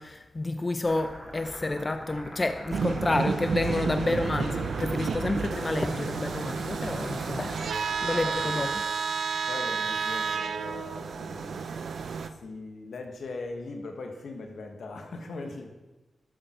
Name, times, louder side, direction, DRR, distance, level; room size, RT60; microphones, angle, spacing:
voice 1, 0.0-8.7, left 2 dB, 35° left, 8 dB, 0.5 m, -29 dB
sound 1, 0.8-8.7, equal, 20° left, 3.7 m, -43 dB
sound 2, 2.7-12.3, right 5 dB, 80° right, 0.5 m, -31 dB
voice 2, 4.0-4.3 8.1-8.7 9.5-11.7 12.4-15.7, left 3 dB, 80° left, 4 dB, 1.4 m, -40 dB
12.5 x 6.7 x 4.4 m, 1.1 s
cardioid pair, 70°, 0 cm